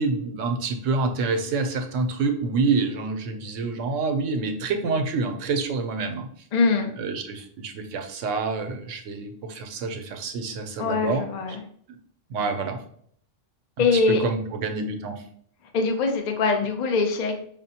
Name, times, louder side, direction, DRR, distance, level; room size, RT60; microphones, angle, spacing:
voice 1, 0.0-6.3 7.0-11.2 12.3-12.8 13.8-15.2, right 4 dB, 90° right, 6 dB, 1.0 m, -27 dB
voice 2, 6.5-6.9 10.8-11.6 13.8-14.2 15.7-17.4, left 4 dB, 55° left, 4 dB, 0.5 m, -22 dB
5.0 x 2.0 x 2.7 m, 0.62 s
omnidirectional pair, 1.2 m